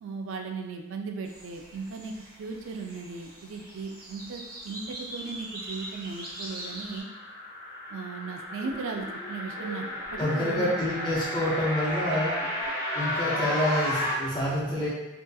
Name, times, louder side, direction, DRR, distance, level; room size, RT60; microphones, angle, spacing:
voice 1, 0.0-2.1 2.4-7.1 7.9-9.9 10.1-10.8, right 4 dB, 80° right, 4 dB, 0.3 m, -37 dB
sound 1, 1.2-7.0, right 1 dB, 45° right, 0.6 m, -42 dB
sound 2, 5.8-14.1, left 1 dB, 10° right, 0.8 m, -33 dB
sound 3, 8.6-12.7, left 1 dB, 90° left, 0.5 m, -46 dB
voice 2, 10.2-12.4 12.9-14.9, left 1 dB, 20° left, -5 dB, 0.4 m, -27 dB
2.6 x 2.4 x 2.2 m, 1.1 s
head